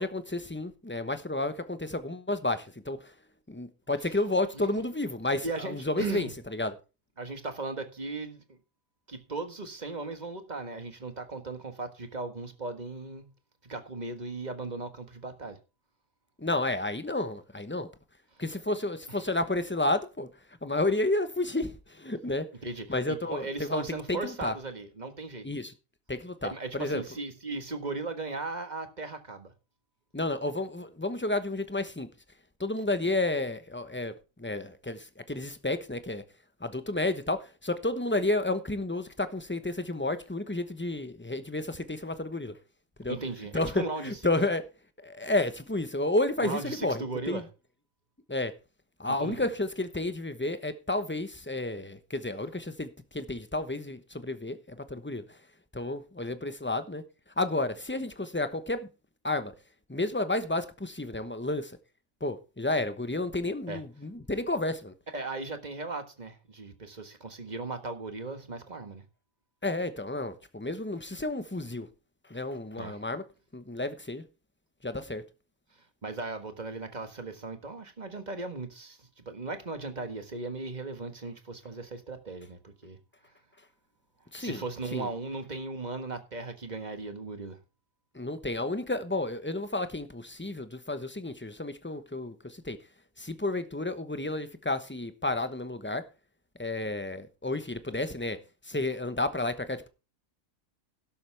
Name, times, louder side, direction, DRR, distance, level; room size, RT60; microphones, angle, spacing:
voice 1, 0.0-3.1 3.5-6.7 16.4-17.9 18.4-20.3 20.6-22.5 22.9-24.5 25.4-25.7 26.1-27.0 30.1-32.1 32.6-34.1 34.4-36.2 36.6-42.6 43.0-43.2 43.5-44.6 45.0-47.4 48.3-48.5 49.0-55.4 55.7-57.0 57.4-58.9 59.2-59.5 59.9-61.8 62.2-64.9 69.6-71.9 72.3-73.2 73.5-74.2 74.8-75.2 84.3-84.6 84.9-85.1 88.1-92.8 93.2-96.0 96.6-98.4 98.6-99.9, left 2 dB, 10° left, 0.8 m, -31 dB
voice 2, 5.4-6.3 7.2-8.6 9.1-13.3 13.6-15.6 19.1-19.2 22.6-25.5 26.5-29.5 43.1-44.1 46.4-47.5 49.1-49.5 63.7-63.8 65.1-69.0 72.8-73.0 76.0-83.0 84.4-87.6, right 3 dB, 35° right, 1.5 m, -37 dB
12.0 x 12.0 x 3.4 m
omnidirectional pair, 1.4 m